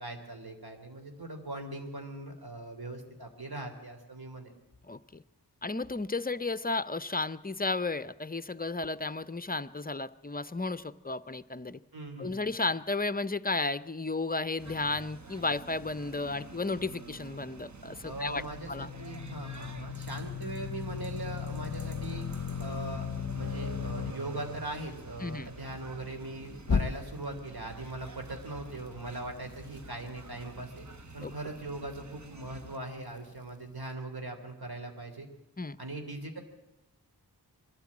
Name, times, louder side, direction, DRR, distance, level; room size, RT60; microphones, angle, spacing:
voice 1, 0.0-4.5 11.9-12.5 18.0-22.3 22.6-30.9 31.1-35.3 35.8-36.4, right 2 dB, 65° right, 5 dB, 3.2 m, -40 dB
voice 2, 4.9-5.2 5.6-11.8 12.2-18.4 18.7-18.9 25.2-25.5 31.2-31.3 35.6-35.8, left 3 dB, 20° left, 15 dB, 0.6 m, -33 dB
sound 1, 14.6-32.8, right 2 dB, 45° right, 1.1 m, -47 dB
sound 2, 18.3-24.1 26.6-27.4, left 6 dB, 45° left, 0.9 m, -35 dB
22.5 x 13.5 x 8.5 m, 0.95 s
wide cardioid pair, 60°, 41 cm